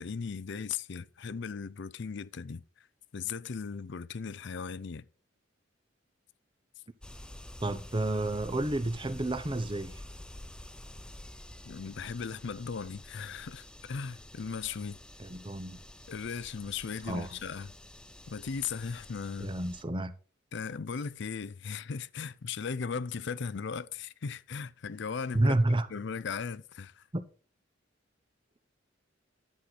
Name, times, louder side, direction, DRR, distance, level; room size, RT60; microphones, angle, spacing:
voice 1, 0.0-2.9 3.1-5.0 11.6-15.0 16.1-17.7 18.3-19.6 20.5-25.6 25.9-27.0, left 5 dB, 65° left, 0.5 m, -37 dB
sound 1, 7.0-19.8, left 1 dB, 5° left, 0.6 m, -49 dB
voice 2, 7.6-9.9 15.2-15.8 17.1-17.3 19.4-20.1 25.3-25.9 27.1-27.2, right 1 dB, 25° right, 0.8 m, -30 dB
11.5 x 7.8 x 4.1 m
head